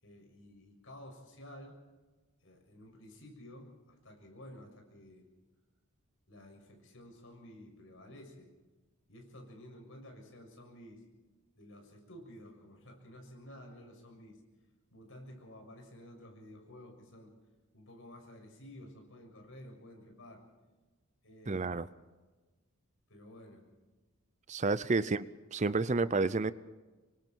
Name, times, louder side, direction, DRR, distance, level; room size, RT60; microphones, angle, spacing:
voice 1, 0.0-1.8 2.4-5.3 6.3-8.5 9.1-11.0 11.6-14.4 14.9-17.3 17.7-20.4 21.2-21.7 23.1-23.6 25.0-25.3, left 1 dB, 60° left, 2 dB, 6.9 m, -52 dB
voice 2, 21.5-21.9 24.5-25.3 25.5-26.5, right 3 dB, 30° right, 16 dB, 0.6 m, -30 dB
26.5 x 24.0 x 4.7 m, 1.2 s
head